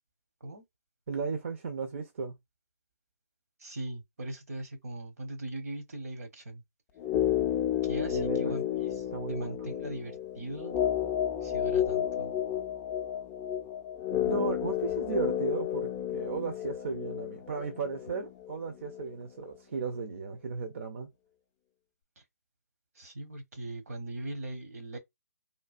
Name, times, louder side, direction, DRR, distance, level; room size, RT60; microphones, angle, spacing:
voice 1, 1.1-2.4 8.1-8.6 9.1-9.7 14.3-21.1, right 4 dB, 50° right, 0.6 m, -35 dB
voice 2, 3.6-6.6 7.8-10.8 11.4-12.3 22.9-25.0, right 1 dB, 65° right, 1.1 m, -40 dB
sound 1, 7.0-19.1 19.4-19.5, left 10 dB, 15° left, 0.3 m, -31 dB
3.2 x 2.3 x 2.4 m
figure-of-eight pair, 140°, 9 cm